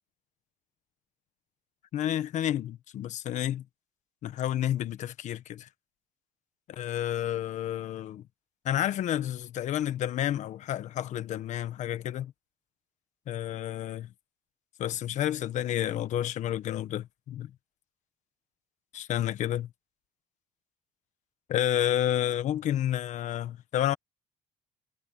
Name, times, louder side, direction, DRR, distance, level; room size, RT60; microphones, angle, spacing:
voice 1, 1.9-3.6 4.2-5.7 6.7-8.2 8.6-12.3 13.3-14.1 14.8-17.5 18.9-19.7 21.5-23.9, left 11 dB, 60° left, 1.3 m, -30 dB
cardioid pair, 140°, 14 cm